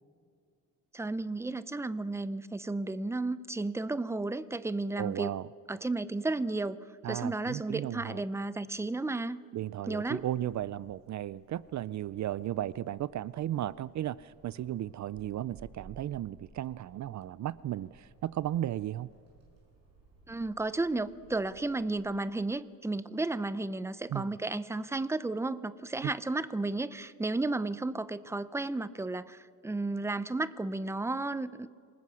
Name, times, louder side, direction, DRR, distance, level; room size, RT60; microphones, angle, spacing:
voice 1, 0.9-5.3 5.7-6.8 7.1-9.4 9.9-10.2 20.3-31.7, right 2 dB, 10° right, 16 dB, 0.5 m, -33 dB
voice 2, 5.0-5.5 7.0-8.2 9.5-19.1 24.1-24.3, right 12 dB, 55° right, 19 dB, 0.5 m, -35 dB
sound 1, 9.8-21.9, right 5 dB, 85° right, 7.4 m, -59 dB
27.5 x 20.0 x 6.3 m, 2.3 s
cardioid pair, 150°, 34 cm